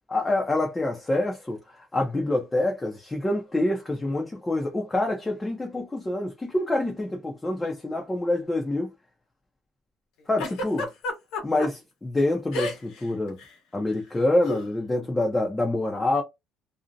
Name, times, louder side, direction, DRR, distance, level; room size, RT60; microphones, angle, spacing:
voice 1, 0.1-1.6 1.9-8.9 10.3-10.9 11.4-13.4 13.7-16.2, left 2 dB, 10° left, 0.5 m, -26 dB
Giggle, 10.4-11.7 12.5-13.0 13.3-13.5 14.4-14.7, left 2 dB, 80° left, 1.0 m, -31 dB
2.6 x 2.0 x 2.4 m
cardioid pair, 155°, 0 cm